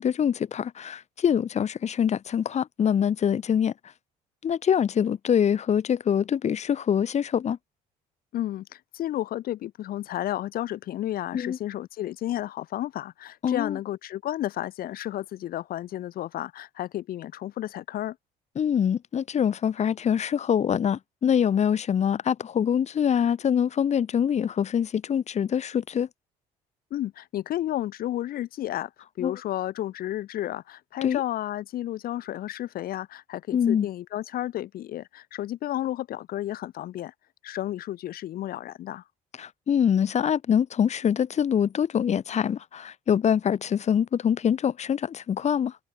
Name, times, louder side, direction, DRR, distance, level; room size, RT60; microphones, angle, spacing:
voice 1, 0.0-3.7 4.4-7.6 11.3-11.6 13.4-13.8 18.5-26.1 29.2-29.3 31.0-31.2 33.5-33.9 39.4-45.8, left 8 dB, 40° left, 1.5 m, -24 dB
voice 2, 8.3-18.2 26.9-37.1 37.4-39.0, left 13 dB, 60° left, 0.9 m, -32 dB
cardioid pair, 110°, 17 cm